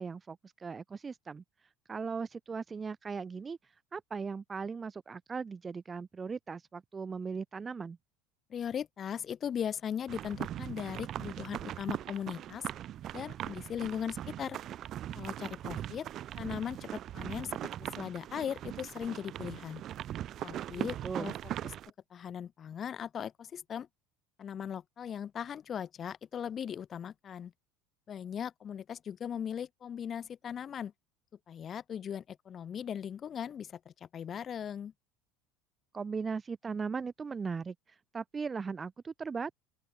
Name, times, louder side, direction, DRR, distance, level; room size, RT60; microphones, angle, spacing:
voice 1, 0.0-1.4 1.9-3.6 3.9-8.0 20.8-21.4 35.9-37.7 38.1-39.5, right 5 dB, 15° right, 0.8 m, -38 dB
voice 2, 8.5-12.7 13.1-14.6 15.1-16.1 16.4-19.8 20.4-21.3 21.6-21.7 22.1-23.9 24.4-27.5 28.1-30.9 31.5-34.9, left 8 dB, 25° left, 2.2 m, -38 dB
sound 1, 10.1-21.9, right 12 dB, 35° right, 4.8 m, -40 dB
open air
cardioid pair, 155°, 0 cm